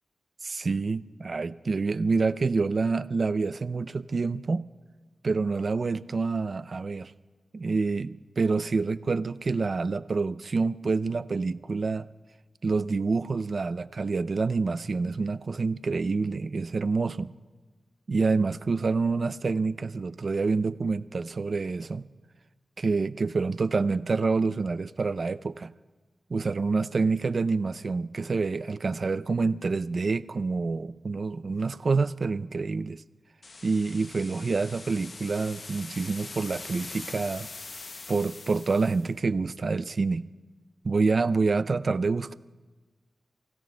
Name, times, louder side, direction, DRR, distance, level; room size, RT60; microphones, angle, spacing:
voice 1, 0.4-4.7 5.2-7.1 7.5-12.1 12.6-17.3 18.1-22.1 22.8-25.7 26.3-33.0 33.6-37.5 38.1-40.3 40.8-42.3, right 4 dB, 50° right, 14 dB, 0.4 m, -27 dB
sound 1, 33.4-39.1, left 3 dB, 45° left, 0.7 m, -43 dB
30.0 x 16.5 x 2.2 m, 1.3 s
wide cardioid pair, 95°, 0 cm